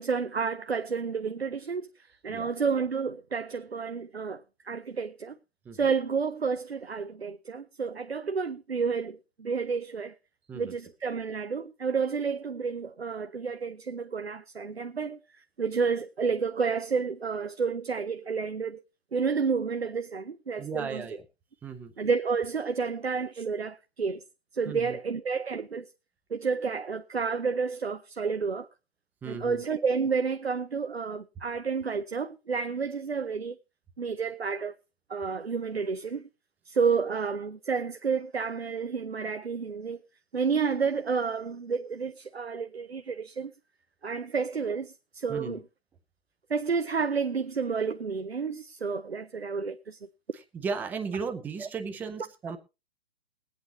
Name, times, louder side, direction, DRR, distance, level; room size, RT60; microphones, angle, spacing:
voice 1, 0.0-5.4 5.7-10.2 10.5-18.8 19.1-21.0 22.0-24.2 24.5-25.9 26.3-28.7 29.3-33.6 34.0-34.7 35.1-36.3 36.7-40.0 40.3-43.5 44.0-45.6 46.5-50.0 51.6-51.7, right 5 dB, 85° right, 0.6 m, -30 dB
voice 2, 20.6-21.2 21.6-21.9 24.7-25.0 29.2-29.6 45.3-45.6 50.5-52.6, right 5 dB, 5° right, 0.5 m, -35 dB
21.5 x 8.6 x 2.9 m
figure-of-eight pair, 120°, 30 cm